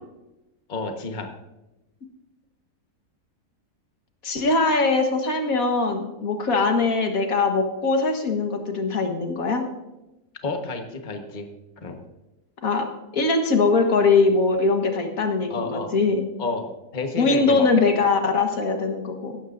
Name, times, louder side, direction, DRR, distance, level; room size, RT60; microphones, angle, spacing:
voice 1, 0.7-1.3 10.4-11.5 11.8-12.0 15.5-15.9 16.4-17.7, left 3 dB, 30° left, 3 dB, 1.3 m, -30 dB
voice 2, 4.2-9.7 12.6-12.9 13.1-16.2 17.2-19.4, left 3 dB, 60° left, 4 dB, 1.8 m, -21 dB
16.5 x 12.5 x 2.6 m, 0.96 s
omnidirectional pair, 1.7 m